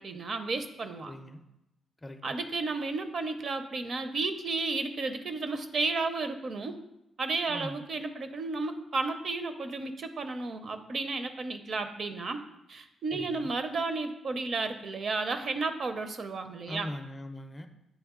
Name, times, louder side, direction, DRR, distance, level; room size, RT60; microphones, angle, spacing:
voice 1, 0.0-1.1 2.2-6.8 7.2-12.4 12.7-16.9, right 3 dB, 45° right, 9 dB, 0.5 m, -33 dB
voice 2, 1.1-1.4 2.0-2.2 7.5-7.8 13.1-13.5 16.7-17.7, left 1 dB, 15° left, 7 dB, 0.4 m, -41 dB
8.2 x 3.3 x 3.6 m, 0.89 s
cardioid pair, 130°, 0 cm